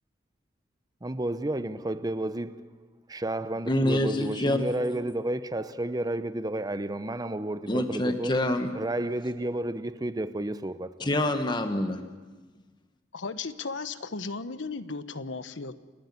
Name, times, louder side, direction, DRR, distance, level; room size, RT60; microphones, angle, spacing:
voice 1, 1.0-2.7 3.1-8.3 8.7-11.1, right 1 dB, 20° right, 0.8 m, -31 dB
voice 2, 3.7-4.7 7.7-8.7 11.0-12.0, left 1 dB, 25° left, 1.2 m, -26 dB
voice 3, 13.1-15.8, left 4 dB, 90° left, 1.0 m, -35 dB
29.0 x 11.5 x 9.7 m
head